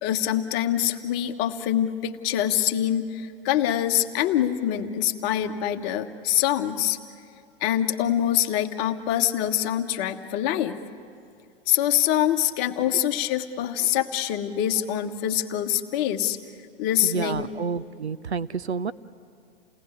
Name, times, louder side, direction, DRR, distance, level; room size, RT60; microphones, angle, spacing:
voice 1, 0.0-7.0 7.6-10.8 11.7-16.4 16.8-17.5, left 11 dB, 30° left, 6 dB, 1.2 m, -25 dB
voice 2, 17.0-18.9, right 5 dB, 75° right, 14 dB, 0.8 m, -29 dB
29.0 x 18.5 x 9.8 m, 2.4 s
figure-of-eight pair, 105°, 33 cm